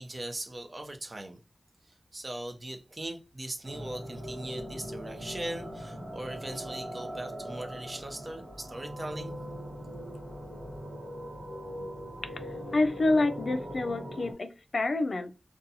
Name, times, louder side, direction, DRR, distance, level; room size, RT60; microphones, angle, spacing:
voice 1, 0.0-1.4 2.1-9.4, right 1 dB, 45° right, 0.6 m, -39 dB
sound 1, 3.6-14.3, equal, 90° right, 0.9 m, -40 dB
voice 2, 12.7-15.3, left 2 dB, 80° left, 0.3 m, -27 dB
2.5 x 2.2 x 2.7 m
cardioid pair, 45°, 0 cm